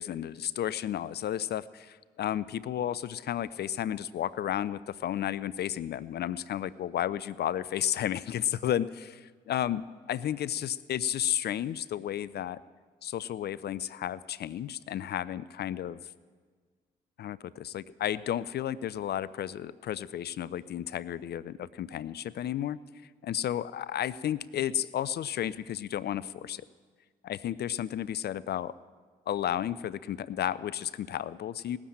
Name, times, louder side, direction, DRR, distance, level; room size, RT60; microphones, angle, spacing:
voice 1, 0.0-12.6 13.0-16.0 17.2-22.8 23.2-26.6 27.2-28.7 29.3-31.8, left 11 dB, 55° left, 18 dB, 0.4 m, -32 dB
18.0 x 7.3 x 8.8 m, 1.5 s
hypercardioid pair, 45°, 20 cm